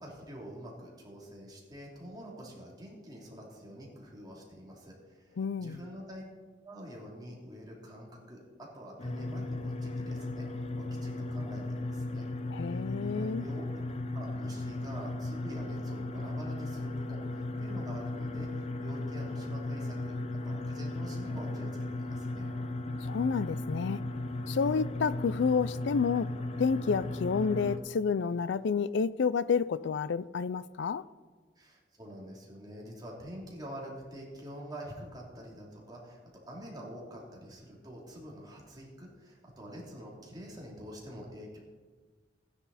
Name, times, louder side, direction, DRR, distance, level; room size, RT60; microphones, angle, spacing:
voice 1, 0.0-6.2 6.6-12.3 12.7-12.8 13.1-13.7 14.1-20.1 20.4-22.5 31.6-36.2 36.5-41.6, equal, 20° right, 3.0 m, -46 dB
voice 2, 5.4-5.8 12.5-13.4 23.0-24.0 24.5-31.0, left 5 dB, 70° left, 0.4 m, -30 dB
sound 1, 9.0-27.8, left 2 dB, 35° left, 0.9 m, -36 dB
15.0 x 9.9 x 4.2 m
head